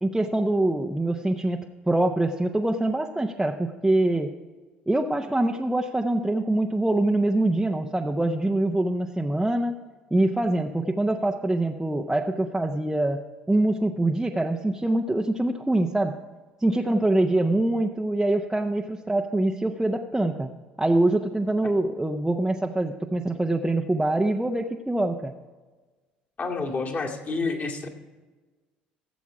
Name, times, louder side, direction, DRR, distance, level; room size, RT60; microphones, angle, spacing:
voice 1, 0.0-4.3 4.9-9.8 10.1-13.2 13.5-16.1 16.6-20.5 20.8-25.3, right 1 dB, 10° right, 1 dB, 0.7 m, -24 dB
voice 2, 26.4-27.9, left 3 dB, 35° left, 0 dB, 2.1 m, -29 dB
15.5 x 7.1 x 4.9 m, 1.3 s
hypercardioid pair, 60°, 5 cm